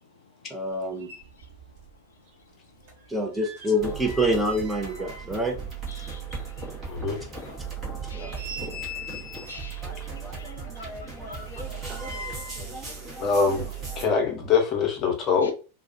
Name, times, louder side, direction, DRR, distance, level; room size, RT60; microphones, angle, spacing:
voice 1, 0.0-3.2 4.8-5.3 5.9-13.3 15.4-15.5, left 3 dB, 70° left, 0.4 m, -50 dB
voice 2, 0.5-1.1 3.1-5.6 8.1-8.4 11.9-12.0, equal, 5° right, 0.5 m, -26 dB
sound 1, 1.0-2.0 2.3-6.2 6.6-6.7 7.2-7.3 7.9-9.8 10.7-12.7 13.0-13.1, left 1 dB, 45° right, 1.2 m, -42 dB
sound 2, 3.8-14.0, right 5 dB, 25° right, 0.9 m, -37 dB
voice 3, 6.9-7.2 13.2-13.7 14.0-15.5, left 5 dB, 30° left, 0.8 m, -23 dB
2.3 x 2.2 x 2.6 m
figure-of-eight pair, 90°, 0 cm